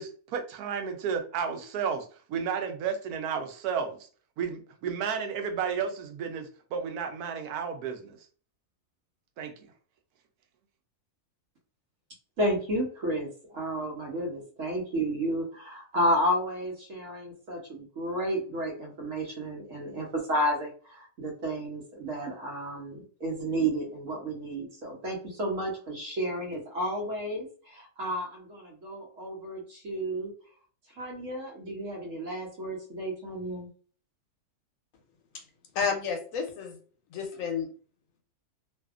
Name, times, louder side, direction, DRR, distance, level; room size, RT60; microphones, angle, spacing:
voice 1, 0.0-4.1 4.4-8.2 9.4-9.5, right 6 dB, 85° right, 1.1 m, -32 dB
voice 2, 12.4-30.3 31.0-33.7, right 1 dB, 65° right, 1.2 m, -32 dB
voice 3, 35.7-36.8 37.1-37.7, left 6 dB, 70° left, 1.0 m, -31 dB
2.7 x 2.5 x 2.3 m
omnidirectional pair, 1.6 m